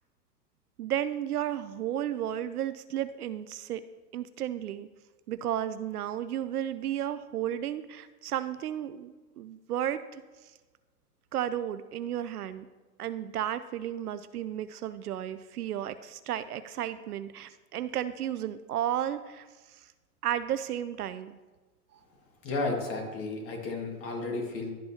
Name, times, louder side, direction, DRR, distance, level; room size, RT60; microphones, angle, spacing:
voice 1, 0.8-3.8 4.1-4.9 5.3-10.2 11.3-12.7 13.0-19.9 20.2-21.4, right 11 dB, 70° right, 13 dB, 0.6 m, -33 dB
voice 2, 22.4-24.7, left 3 dB, 25° left, 1 dB, 1.9 m, -33 dB
12.0 x 5.3 x 2.9 m, 1.3 s
hypercardioid pair, 115°, 48 cm